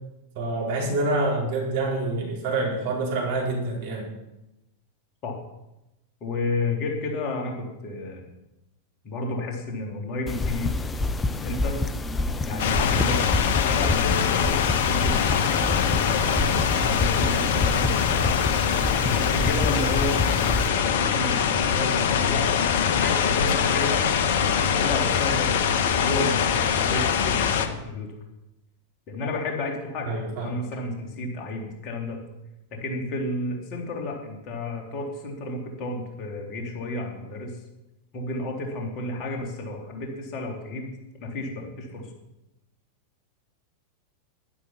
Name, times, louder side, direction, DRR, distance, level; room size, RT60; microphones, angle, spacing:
voice 1, 0.3-4.1 30.0-30.5, right 2 dB, 50° right, -1 dB, 4.7 m, -27 dB
voice 2, 6.2-8.2 9.0-10.8 11.3-11.8 12.4-15.2 15.9-18.4 19.0-20.2 20.7-24.0 24.6-25.6 25.9-28.1 29.1-30.1 30.4-32.2 32.7-37.5 38.1-40.9 41.2-42.1, left 2 dB, 40° left, 1 dB, 3.4 m, -32 dB
sound 1, 10.3-20.7, left 3 dB, 15° left, 0.7 m, -28 dB
sound 2, 12.6-27.7, left 7 dB, 55° left, 1.2 m, -23 dB
12.0 x 11.5 x 5.9 m, 0.94 s
figure-of-eight pair, 90°, 0 cm